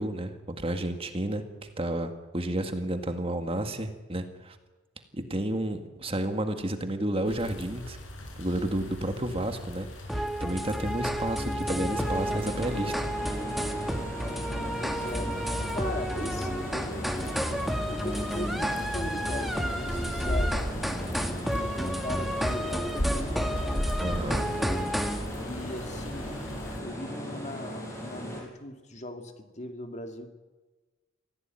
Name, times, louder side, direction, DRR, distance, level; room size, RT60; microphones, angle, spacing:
voice 1, 0.0-1.4 1.8-4.6 5.2-8.0 8.4-12.9 24.0-24.5, right 1 dB, 30° right, 7 dB, 1.9 m, -31 dB
sound 1, 7.3-26.8, equal, 85° left, 6.3 m, -37 dB
sound 2, 10.1-25.3, equal, ahead, 1.8 m, -31 dB
sound 3, 11.9-28.4, equal, 15° left, 6.4 m, -38 dB
voice 2, 14.5-15.4 15.7-17.3 17.8-21.0 21.5-23.8 24.1-25.0 25.3-26.4 26.8-30.3, left 1 dB, 35° left, 6 dB, 2.5 m, -39 dB
25.5 x 16.5 x 9.1 m, 1.2 s
head